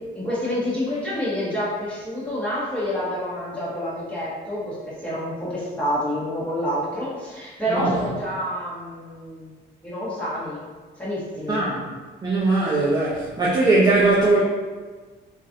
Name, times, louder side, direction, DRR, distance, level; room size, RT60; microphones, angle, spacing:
voice 1, 0.1-9.5 9.8-10.6 11.0-11.6, equal, 5° left, -9 dB, 1.4 m, -28 dB
voice 2, 11.5-11.8 12.2-14.4, right 2 dB, 20° right, -7 dB, 0.6 m, -20 dB
3.0 x 2.5 x 2.7 m, 1.4 s
cardioid pair, 90°, 20 cm